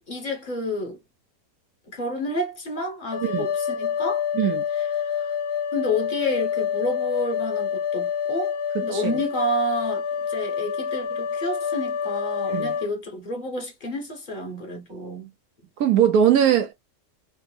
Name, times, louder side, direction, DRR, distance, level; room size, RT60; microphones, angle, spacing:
voice 1, 0.1-1.0 1.9-4.3 4.7-5.3 5.7-8.6 8.8-15.3, left 1 dB, 35° left, 0.8 m, -30 dB
sound 1, 3.1-12.9, left 7 dB, 70° left, 0.9 m, -27 dB
voice 2, 15.8-16.7, right 9 dB, 70° right, 1.0 m, -20 dB
3.3 x 2.0 x 3.1 m
omnidirectional pair, 1.8 m